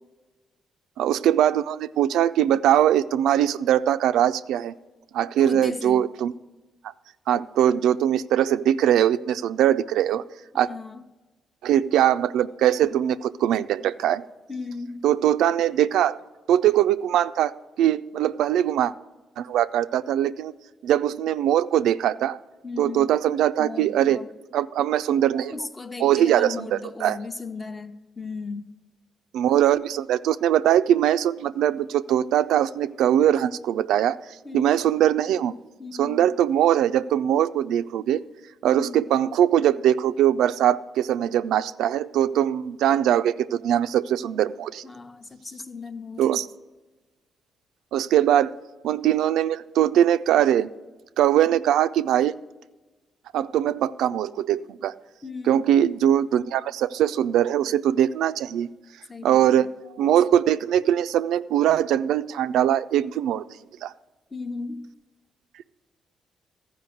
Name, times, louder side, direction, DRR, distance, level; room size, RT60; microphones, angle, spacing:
voice 1, 1.0-4.7 5.1-6.3 7.3-10.2 10.5-10.7 11.6-14.2 15.0-16.2 16.5-18.9 19.4-20.5 20.8-22.4 22.8-24.2 24.5-25.5 26.0-26.7 27.0-27.2 29.3-34.2 34.5-35.5 36.0-38.2 38.6-44.8 46.2-46.4 47.9-48.5 48.8-50.7 51.2-52.3 53.3-54.9 55.5-58.7 59.2-59.7 60.0-63.4 63.8-63.9, right 11 dB, 85° right, 0.3 m, -21 dB
voice 2, 5.4-6.0 10.5-11.0 14.5-15.1 22.6-23.1 23.6-24.3 25.5-28.7 34.4-34.8 35.8-36.3 38.6-39.1 44.8-46.5 55.2-55.8 59.1-59.7 64.3-64.9, left 4 dB, 25° left, 0.8 m, -36 dB
13.5 x 5.1 x 7.7 m
cardioid pair, 90°, 0 cm